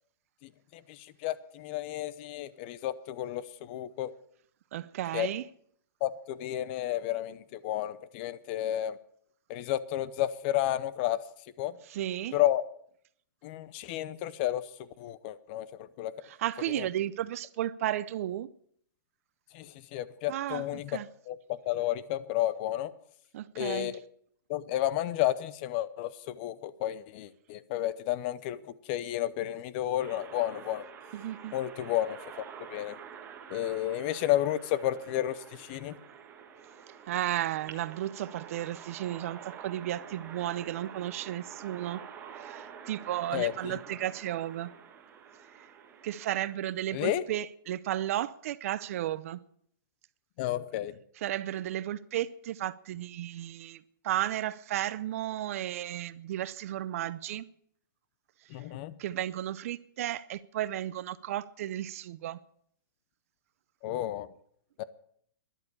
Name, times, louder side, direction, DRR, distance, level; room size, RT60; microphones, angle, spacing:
voice 1, 0.7-4.1 5.1-5.3 6.0-9.0 9.5-11.2 11.6-11.7 12.3-12.6 13.4-16.1 16.8-16.9 19.5-21.0 21.3-22.9 23.6-23.9 24.5-30.8 31.5-33.0 33.5-36.0 43.3-43.8 46.9-47.2 50.4-51.0 58.5-58.9 63.8-64.3 64.8-64.9, left 13 dB, 30° left, 0.7 m, -32 dB
voice 2, 4.7-5.5 11.9-12.4 16.2-18.5 20.3-21.1 23.3-23.9 31.1-31.5 37.1-42.0 42.3-44.7 45.6-45.7 46.0-49.4 51.2-57.5 59.0-62.4, right 12 dB, 40° right, 0.6 m, -34 dB
sound 1, 30.0-46.5, right 7 dB, 15° right, 1.6 m, -48 dB
13.5 x 11.0 x 8.4 m
hypercardioid pair, 165°, 11 cm